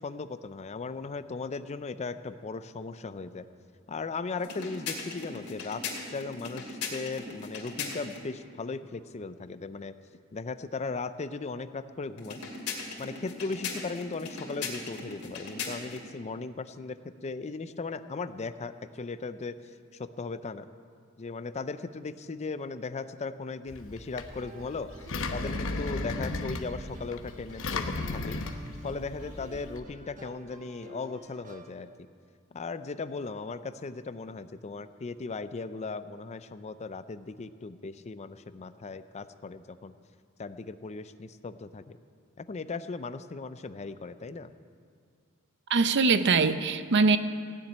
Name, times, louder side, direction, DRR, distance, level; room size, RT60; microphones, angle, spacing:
voice 1, 0.0-3.5 3.9-5.8 6.1-10.0 10.3-12.4 13.0-19.6 19.9-20.7 21.2-24.9 25.3-28.4 28.8-31.9 32.5-39.9 40.4-42.0 42.4-44.5, left 4 dB, 30° left, 13 dB, 0.4 m, -37 dB
sound 1, 4.4-8.3 12.2-16.1, left 4 dB, 85° left, 2.6 m, -38 dB
Engine, 23.7-29.8, left 3 dB, 60° left, 1.0 m, -35 dB
sound 2, 24.2-31.7, right 2 dB, 35° right, 1.1 m, -49 dB
voice 2, 45.7-47.2, right 4 dB, 55° right, 11 dB, 0.6 m, -22 dB
16.0 x 7.3 x 9.7 m, 2.2 s
head